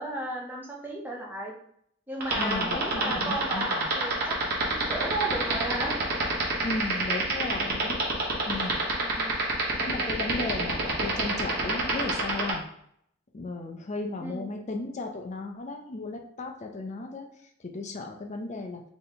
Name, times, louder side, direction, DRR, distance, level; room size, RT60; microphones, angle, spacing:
voice 1, 0.0-1.5 2.1-4.4 4.6-5.9 9.0-9.4 14.2-14.5, right 1 dB, 10° right, -2 dB, 0.8 m, -34 dB
sound 1, 2.2-12.5, right 4 dB, 45° right, 1.2 m, -26 dB
voice 2, 2.3-3.9 6.6-8.0 8.5-8.7 9.8-12.6 13.3-17.3 17.7-18.8, left 3 dB, 35° left, 3 dB, 0.4 m, -35 dB
4.0 x 3.2 x 3.9 m, 0.68 s
head